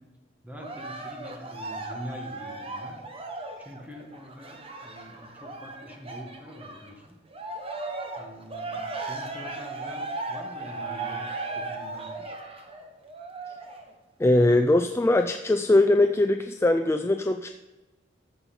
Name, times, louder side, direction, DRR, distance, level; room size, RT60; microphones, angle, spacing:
voice 1, 0.4-3.0 3.6-7.1 8.2-12.4, equal, 10° right, 1 dB, 1.5 m, -44 dB
Cheering, 0.6-6.9 7.3-13.9 14.5-14.6, right 3 dB, 30° right, 1.1 m, -37 dB
voice 2, 14.2-17.5, left 2 dB, 15° left, 6 dB, 0.3 m, -21 dB
13.5 x 5.5 x 4.3 m, 1.1 s
head